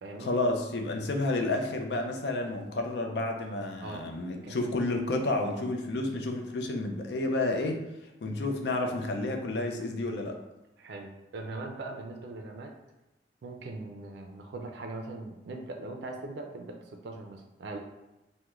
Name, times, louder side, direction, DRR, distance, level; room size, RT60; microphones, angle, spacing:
voice 1, 0.2-7.8 8.2-10.4, left 2 dB, 70° left, 3 dB, 0.5 m, -30 dB
voice 2, 3.8-4.1 4.4-4.6 10.8-12.7 13.4-17.8, right 2 dB, 70° right, 3 dB, 0.4 m, -40 dB
2.9 x 2.1 x 3.5 m, 0.99 s
head